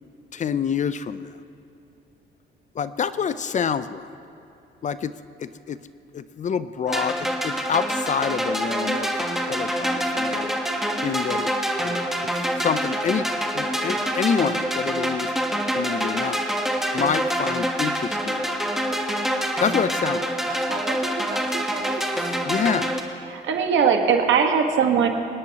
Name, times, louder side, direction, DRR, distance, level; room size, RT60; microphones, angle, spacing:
voice 1, 0.3-1.3 2.8-4.1 4.8-5.1 5.4-5.8 6.1-9.1 9.5-10.5 11.0-11.5 11.8-11.9 12.6-13.3 13.5-15.3 15.8-16.4 16.9-18.5 19.6-20.2 22.4-23.0, left 7 dB, 40° left, 14 dB, 0.4 m, -27 dB
sound 1, 6.9-23.0, equal, ahead, 1.2 m, -26 dB
voice 2, 20.5-22.4, right 7 dB, 45° right, 5 dB, 0.6 m, -36 dB
voice 3, 23.2-25.1, right 6 dB, 70° right, 4 dB, 1.4 m, -20 dB
25.5 x 9.8 x 2.9 m, 2.7 s
cardioid pair, 90°, 20 cm